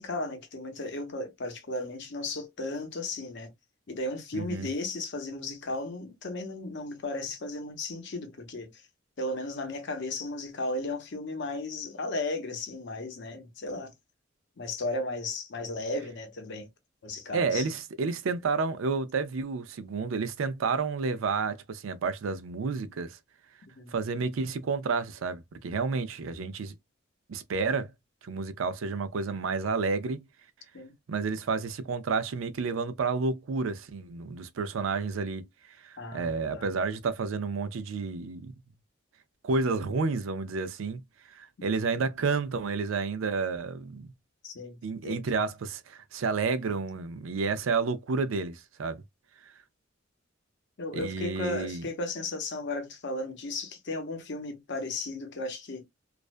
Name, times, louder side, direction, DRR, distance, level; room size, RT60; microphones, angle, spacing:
voice 1, 0.0-3.5 3.9-8.7 9.2-13.9 14.6-16.7 17.0-17.6 23.8-23.9 30.7-30.9 36.0-36.7 44.4-45.2 50.8-55.8, left 2 dB, 60° left, 0.7 m, -35 dB
voice 2, 4.3-4.7 17.3-23.2 23.9-26.8 27.3-27.9 28.2-30.2 31.1-35.5 35.8-38.5 39.4-41.0 41.3-44.1 44.8-49.0 50.9-51.9, right 4 dB, 80° right, 0.4 m, -30 dB
2.4 x 2.1 x 2.4 m
head